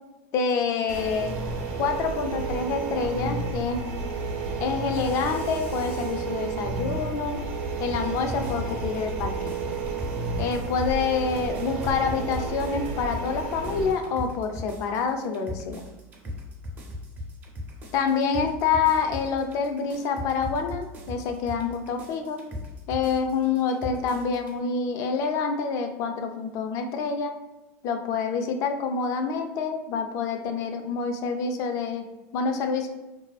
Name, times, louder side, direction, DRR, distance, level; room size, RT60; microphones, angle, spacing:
voice 1, 0.3-1.4 1.8-4.0 4.6-7.4 7.8-9.8 10.4-15.8 17.9-22.4 22.9-27.3 27.8-32.1 32.3-32.9, left 5 dB, 50° left, 6 dB, 0.3 m, -27 dB
sound 1, 0.9-13.9, right 4 dB, 75° right, 0.5 m, -31 dB
Mechanisms, 4.9-6.4, left 3 dB, 80° left, 0.7 m, -46 dB
sound 2, 7.9-24.6, left 2 dB, 25° right, 0.5 m, -39 dB
2.4 x 2.2 x 2.3 m, 1.0 s
supercardioid pair, 135°, 7 cm